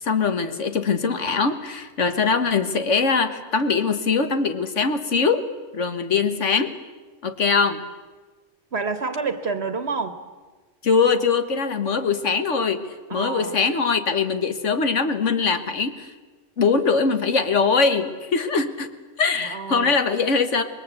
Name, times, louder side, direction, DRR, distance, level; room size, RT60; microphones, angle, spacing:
voice 1, 0.0-5.4 5.7-6.7 7.2-7.8 10.8-12.8 13.1-16.1 16.6-18.9 19.2-20.6, left 5 dB, 85° left, 9 dB, 1.8 m, -22 dB
voice 2, 8.7-10.2 13.1-13.6 19.4-19.9, right 4 dB, 65° right, 9 dB, 1.5 m, -28 dB
26.5 x 21.5 x 8.2 m, 1.3 s
omnidirectional pair, 1.2 m